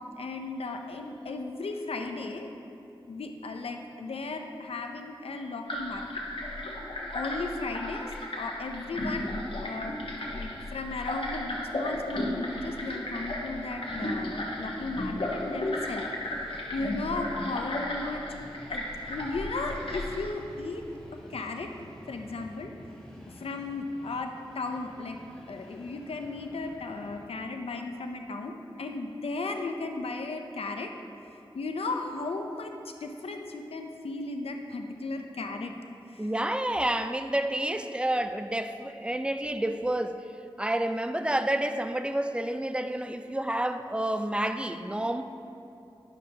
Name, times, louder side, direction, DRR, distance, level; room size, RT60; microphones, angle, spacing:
voice 1, 0.2-2.5 3.1-6.0 7.1-9.4 9.6-9.9 10.3-16.1 16.7-18.2 18.7-20.8 21.1-21.7 22.1-22.7 23.3-25.2 25.5-30.9 31.5-35.7 36.1-36.3, left 3 dB, 90° left, 4 dB, 0.6 m, -35 dB
sound 1, 5.7-20.3, left 1 dB, 65° left, 1.2 m, -34 dB
Train, 8.5-27.3, equal, 5° left, 1.4 m, -51 dB
voice 2, 36.2-40.3 40.6-45.2, right 1 dB, 10° right, 8 dB, 0.4 m, -29 dB
10.5 x 6.5 x 2.8 m, 2.7 s
cardioid pair, 45°, 10 cm